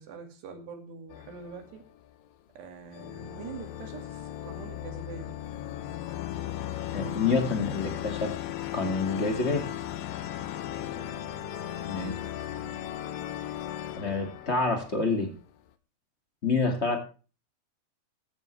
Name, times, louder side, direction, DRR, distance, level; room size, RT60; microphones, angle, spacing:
voice 1, 0.0-1.8 2.6-5.4 11.0-11.2 11.8-12.8, right 5 dB, 85° right, 5 dB, 4.5 m, -45 dB
sound 1, 1.1-2.3 2.9-15.6, left 12 dB, 70° left, 2.4 m, -37 dB
voice 2, 6.9-8.3 8.7-9.7 11.9-12.1 14.0-15.3 16.4-17.0, left 4 dB, 25° left, 5 dB, 1.4 m, -27 dB
15.0 x 13.0 x 3.3 m, 0.35 s
omnidirectional pair, 4.7 m